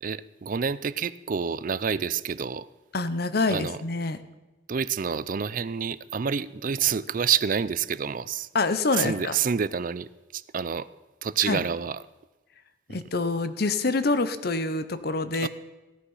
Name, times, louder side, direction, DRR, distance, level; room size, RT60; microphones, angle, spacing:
voice 1, 0.0-2.7 3.5-3.8 4.7-8.5 8.9-10.9 11.2-12.0 12.9-13.0 15.4-15.5, right 7 dB, 45° right, 17 dB, 0.4 m, -28 dB
voice 2, 2.9-4.2 8.5-9.4 11.5-11.6 12.9-15.5, left 3 dB, 55° left, 12 dB, 0.9 m, -26 dB
16.5 x 9.9 x 5.5 m, 1.1 s
head